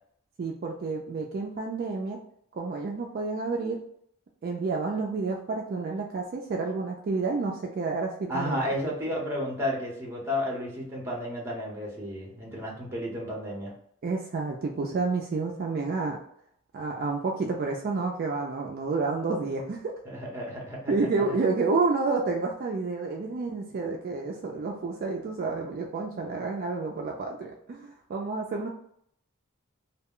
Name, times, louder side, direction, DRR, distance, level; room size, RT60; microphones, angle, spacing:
voice 1, 0.4-2.2 2.5-3.8 4.4-8.6 14.0-16.2 16.7-19.8 20.9-28.7, right 3 dB, 45° right, 0 dB, 0.3 m, -29 dB
voice 2, 8.3-13.7 20.0-21.1, left 1 dB, 10° right, -3 dB, 0.8 m, -32 dB
2.2 x 2.1 x 3.6 m, 0.69 s
head